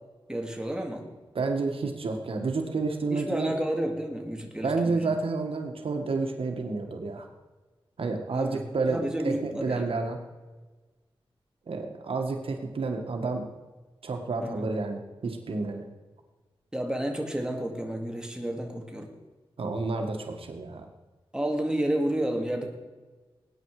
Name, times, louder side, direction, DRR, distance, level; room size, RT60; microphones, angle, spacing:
voice 1, 0.3-1.1 3.1-5.2 8.3-8.6 8.9-9.9 14.4-14.7 16.7-19.1 21.3-22.7, right 1 dB, 10° right, 2 dB, 2.4 m, -31 dB
voice 2, 1.3-3.5 4.6-7.3 8.0-10.2 11.7-13.5 14.0-15.8 19.6-20.9, right 3 dB, 80° right, 4 dB, 1.7 m, -30 dB
19.5 x 9.4 x 4.9 m, 1.3 s
wide cardioid pair, 80°, 9 cm